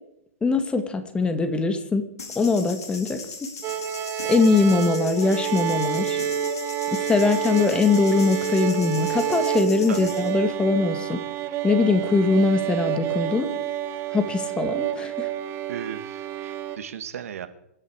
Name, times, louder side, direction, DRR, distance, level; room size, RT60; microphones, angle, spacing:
voice 1, 0.4-2.0 2.4-3.2 4.3-6.2 6.9-11.2 11.6-13.5 14.1-15.3, left 4 dB, 10° left, 8 dB, 2.1 m, -22 dB
sound 1, 2.2-10.3, left 4 dB, 85° left, 4.3 m, -39 dB
sound 2, 3.6-16.8, right 9 dB, 30° right, 1.5 m, -28 dB
voice 2, 15.7-17.5, right 9 dB, 65° right, 10 dB, 2.1 m, -35 dB
27.0 x 10.5 x 4.8 m, 0.76 s
hypercardioid pair, 125°, 8 cm